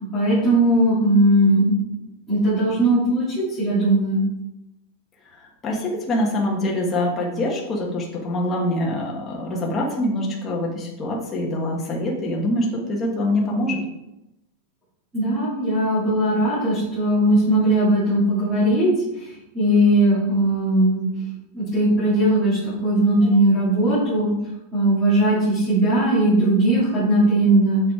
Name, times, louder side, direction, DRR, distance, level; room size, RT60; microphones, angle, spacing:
voice 1, 0.0-1.7 2.3-4.2 15.1-18.9 19.1-21.0 21.5-24.3 24.7-27.8, right 1 dB, 5° right, -14 dB, 3.5 m, -19 dB
voice 2, 5.6-13.8, left 1 dB, 15° left, -2 dB, 1.4 m, -24 dB
6.9 x 6.4 x 4.9 m, 0.90 s
supercardioid pair, 180°, 0 cm